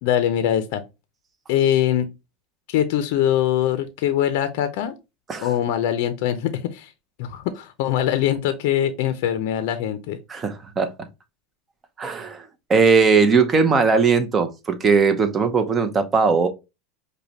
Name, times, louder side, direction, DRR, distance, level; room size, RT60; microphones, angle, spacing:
voice 1, 0.0-0.8 1.5-2.1 2.7-4.9 5.4-6.9 7.2-10.2, left 11 dB, 65° left, 0.5 m, -22 dB
voice 2, 10.3-10.9 12.0-16.5, right 5 dB, 20° right, 0.7 m, -19 dB
4.9 x 2.2 x 2.8 m
supercardioid pair, 125°, 0 cm